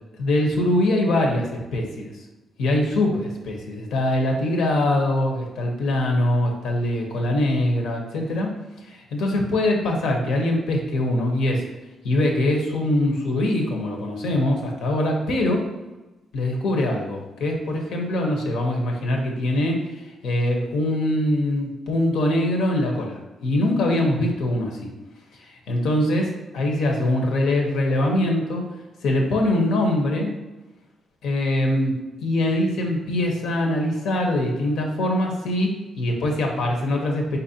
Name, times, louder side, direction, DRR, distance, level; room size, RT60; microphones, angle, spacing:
voice 1, 0.2-2.1 2.6-8.5 8.8-11.6 12.0-15.6 16.3-24.9 25.3-28.7 29.0-30.3 31.2-37.4, left 1 dB, 90° left, 1 dB, 0.9 m, -23 dB
4.4 x 4.0 x 2.8 m, 1.1 s
cardioid pair, 120°, 0 cm